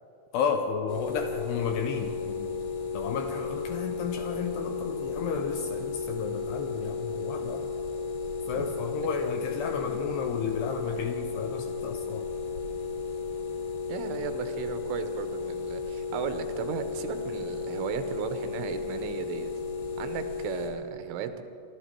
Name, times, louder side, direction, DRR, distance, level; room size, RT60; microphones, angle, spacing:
voice 1, 0.3-2.6 2.9-7.7 8.5-12.3, left 6 dB, 80° left, 5 dB, 2.5 m, -32 dB
sound 1, 0.9-20.7, left 4 dB, 60° left, 3.7 m, -34 dB
voice 2, 13.9-19.5 20.0-21.4, right 8 dB, 80° right, 9 dB, 3.2 m, -35 dB
25.5 x 12.5 x 4.5 m, 2.6 s
omnidirectional pair, 5.5 m